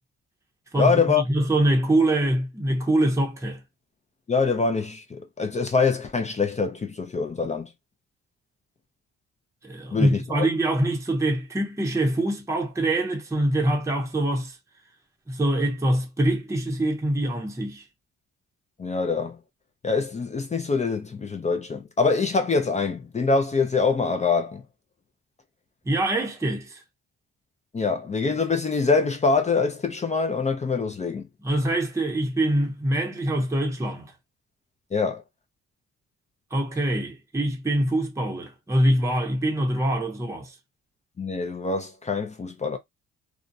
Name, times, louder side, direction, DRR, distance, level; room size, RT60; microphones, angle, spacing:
voice 1, 0.8-1.2 4.3-7.7 9.9-10.5 18.8-19.4 19.8-24.6 27.7-31.3 34.9-35.2 41.2-42.8, left 4 dB, 25° left, 0.4 m, -24 dB
voice 2, 1.3-3.6 9.6-14.6 15.3-17.8 25.9-26.8 31.4-34.1 36.5-40.5, right 1 dB, 10° right, 0.7 m, -24 dB
2.4 x 2.1 x 2.6 m
cardioid pair, 90°, 30 cm